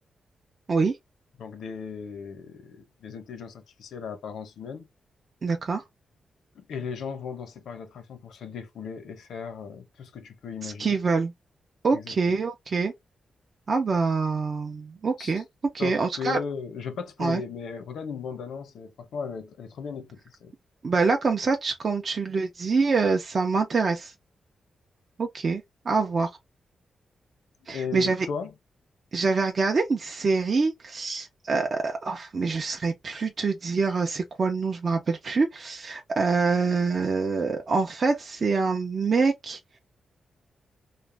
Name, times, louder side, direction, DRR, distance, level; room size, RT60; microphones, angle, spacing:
voice 1, 1.4-4.9 6.5-11.0 11.9-12.4 15.2-15.4 15.8-20.5 27.7-28.5, left 6 dB, 90° left, 0.6 m, -36 dB
voice 2, 5.4-5.8 10.6-11.3 11.8-12.9 13.7-15.4 15.7-16.4 17.2-17.4 20.8-24.1 25.2-26.3 27.7-28.3 29.1-39.6, right 4 dB, 40° right, 0.5 m, -25 dB
2.4 x 2.1 x 3.1 m
wide cardioid pair, 145°, 0 cm